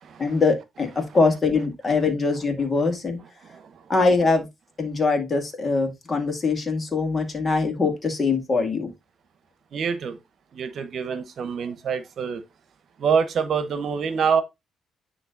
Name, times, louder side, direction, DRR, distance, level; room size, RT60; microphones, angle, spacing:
voice 1, 0.2-3.2 3.9-4.5 4.8-8.9, left 4 dB, 35° left, 2.2 m, -23 dB
voice 2, 9.7-10.2 10.5-12.4 13.0-14.4, right 6 dB, 60° right, 1.0 m, -25 dB
9.7 x 3.3 x 3.9 m
cardioid pair, 90°, 0 cm